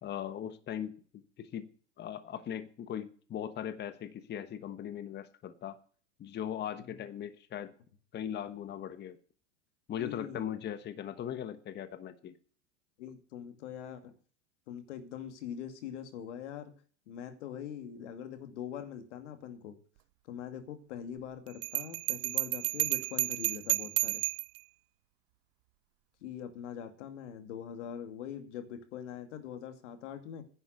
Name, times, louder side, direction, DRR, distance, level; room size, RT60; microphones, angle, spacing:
voice 1, 0.0-0.9 1.4-1.7 2.0-5.8 6.2-7.7 8.1-9.2 9.9-12.3, left 9 dB, 30° left, 12 dB, 1.2 m, -39 dB
voice 2, 9.9-10.6 13.0-14.1 14.7-16.7 17.1-19.8 20.2-24.2 26.2-30.4, left 9 dB, 70° left, 8 dB, 2.5 m, -43 dB
Bell, 21.6-24.6, right 24 dB, 55° right, 0.5 m, -31 dB
10.5 x 7.8 x 8.0 m, 0.43 s
hypercardioid pair, 110°, 37 cm